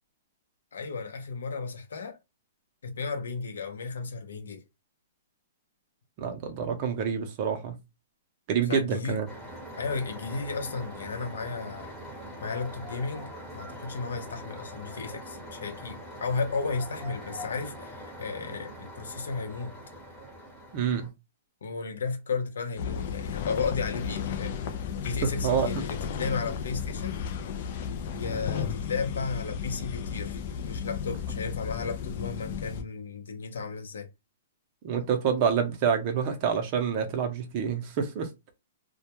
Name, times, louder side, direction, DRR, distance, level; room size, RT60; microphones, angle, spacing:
voice 1, 0.7-2.2 2.8-4.6 8.6-9.2 9.8-11.9 12.4-19.7 21.6-27.2 28.1-34.1, left 4 dB, 90° left, 0.7 m, -34 dB
voice 2, 6.2-7.8 8.5-9.3 20.7-21.1 25.2-25.7 34.8-38.3, right 7 dB, 35° right, 0.6 m, -27 dB
sound 1, 9.3-21.1, equal, 5° left, 0.9 m, -43 dB
sound 2, 22.8-32.8, left 7 dB, 45° left, 0.4 m, -34 dB
2.2 x 2.2 x 2.8 m
hypercardioid pair, 160°, 0 cm